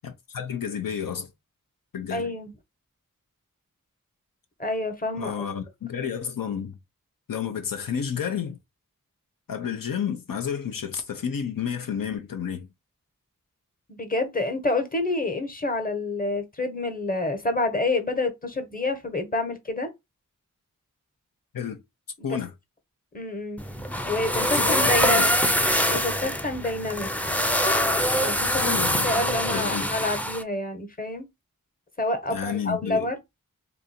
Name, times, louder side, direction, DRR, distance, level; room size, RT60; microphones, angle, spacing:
voice 1, 0.0-1.3 1.9-2.3 5.2-6.8 7.3-8.6 9.5-12.7 21.5-21.8 22.2-22.5 24.4-25.3 28.6-29.3 29.5-29.9 32.3-33.1, left 8 dB, 85° left, 0.6 m, -31 dB
voice 2, 2.1-2.5 4.6-5.5 13.9-19.9 22.2-22.4 23.1-23.6 24.0-25.3 25.8-27.1 28.2-31.3 32.0-33.2, left 2 dB, 25° left, 1.0 m, -28 dB
sound 1, 23.6-30.4, equal, 5° left, 0.5 m, -24 dB
2.7 x 2.6 x 4.2 m
wide cardioid pair, 65°, 33 cm